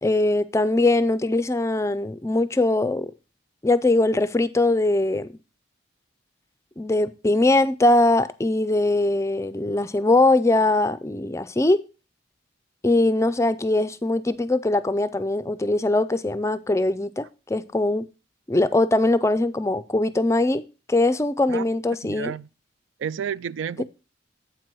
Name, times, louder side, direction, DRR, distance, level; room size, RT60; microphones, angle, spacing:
voice 1, 0.0-3.1 3.6-5.3 6.8-11.8 12.8-18.1 18.5-20.6 20.9-22.3 23.8-23.9, left 2 dB, 15° left, 0.4 m, -21 dB
voice 2, 22.1-22.5 23.0-23.8, right 7 dB, 85° right, 0.3 m, -30 dB
8.1 x 4.7 x 6.0 m
head